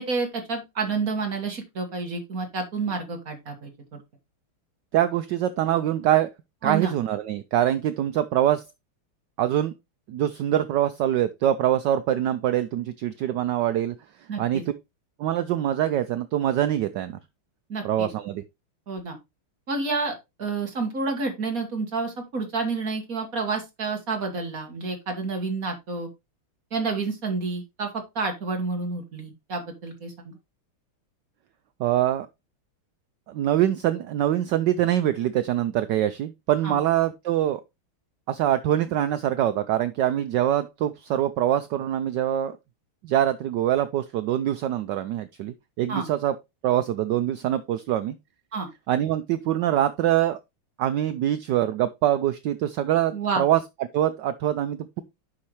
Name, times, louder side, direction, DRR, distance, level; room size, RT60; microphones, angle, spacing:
voice 1, 0.0-3.7 6.6-6.9 14.3-14.6 17.7-18.1 18.9-19.2 19.7-26.1 26.7-30.3 36.6-36.8 45.9-46.1 48.5-48.7 53.1-53.4, right 4 dB, 40° right, 2.1 m, -29 dB
voice 2, 4.9-6.3 6.6-8.6 9.4-9.7 10.1-13.9 14.4-14.6 15.2-17.2 17.8-18.4 31.8-32.3 33.3-37.6 38.3-42.6 43.0-46.3 46.6-48.1 48.9-50.4 50.8-53.6 53.9-55.0, right 12 dB, 75° right, 1.0 m, -24 dB
8.5 x 5.8 x 3.1 m
omnidirectional pair, 2.4 m